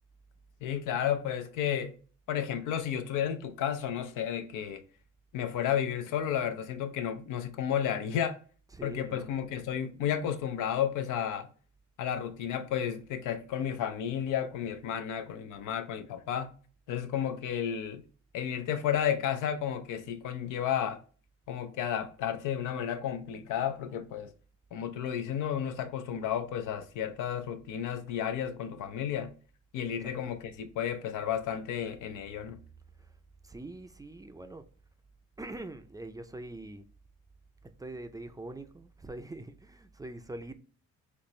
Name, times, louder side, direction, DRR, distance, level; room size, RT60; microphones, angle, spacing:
voice 1, 0.6-1.9 2.3-4.8 5.3-8.4 8.8-11.5 12.0-16.5 16.9-18.0 18.3-21.0 21.5-24.3 24.7-29.3 29.7-32.6, left 9 dB, 90° left, 0.6 m, -32 dB
voice 2, 8.7-9.3 30.0-30.1 33.0-33.2 33.4-34.6 35.4-36.8 37.6-40.5, right 2 dB, 10° right, 0.4 m, -43 dB
4.3 x 3.1 x 3.1 m
cardioid pair, 90°, 30 cm